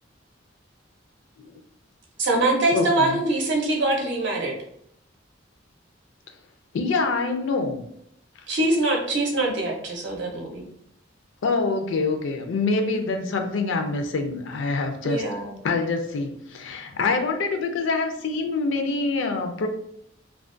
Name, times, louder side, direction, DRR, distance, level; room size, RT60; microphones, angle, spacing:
voice 1, 2.2-4.6 8.5-10.6 15.0-15.6, right 2 dB, 65° right, 1 dB, 0.6 m, -23 dB
voice 2, 2.7-3.2 6.7-7.8 11.4-15.2 15.6-19.7, left 3 dB, 70° left, 5 dB, 0.4 m, -25 dB
2.3 x 2.1 x 2.4 m, 0.72 s
head